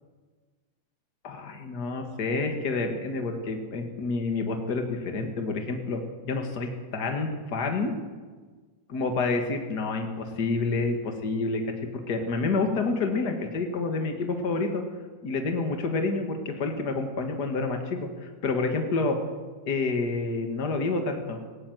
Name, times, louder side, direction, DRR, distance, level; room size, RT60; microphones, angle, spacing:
voice 1, 1.2-7.9 8.9-11.7 12.1-14.8 15.2-19.2 19.6-21.4, left 3 dB, 65° left, 4 dB, 0.9 m, -28 dB
18.5 x 17.5 x 9.4 m, 1.4 s
omnidirectional pair, 5.1 m